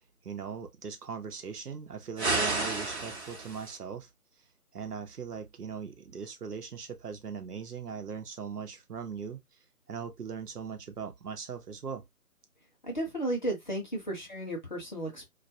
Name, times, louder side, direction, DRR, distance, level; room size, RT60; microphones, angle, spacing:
voice 1, 0.2-4.1 4.7-9.4 9.9-12.1, right 6 dB, 80° right, 0.8 m, -40 dB
sound 1, 2.2-3.8, right 3 dB, 45° right, 0.8 m, -31 dB
voice 2, 12.8-15.3, right 1 dB, 30° left, 0.6 m, -34 dB
2.3 x 2.1 x 2.7 m
figure-of-eight pair, 150°, 46 cm